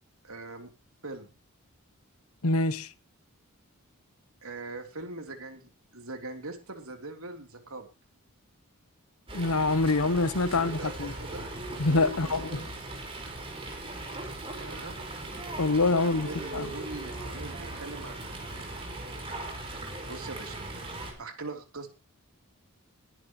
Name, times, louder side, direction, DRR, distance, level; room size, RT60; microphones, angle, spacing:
voice 1, 0.2-0.7 1.0-1.3 4.4-7.9 10.5-11.4 12.0-12.6 14.6-15.0 16.0-18.6 20.0-20.6 21.2-21.9, right 3 dB, 70° right, 3.3 m, -42 dB
voice 2, 2.4-2.9 9.3-11.1 11.8-12.7 15.6-16.3 16.5-16.7, left 3 dB, 85° left, 1.0 m, -25 dB
Fowl, 9.3-21.1, right 2 dB, 25° right, 4.5 m, -39 dB
21.0 x 10.5 x 3.1 m
head